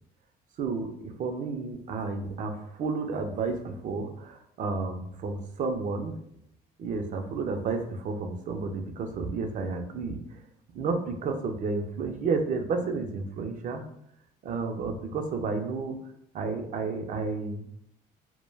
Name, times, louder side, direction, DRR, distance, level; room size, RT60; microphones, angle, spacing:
voice 1, 0.6-6.2 6.8-10.4 10.7-13.8 14.4-16.0 16.3-17.8, right 4 dB, 50° right, 6 dB, 0.4 m, -31 dB
2.1 x 2.1 x 3.2 m, 0.72 s
cardioid pair, 110°, 17 cm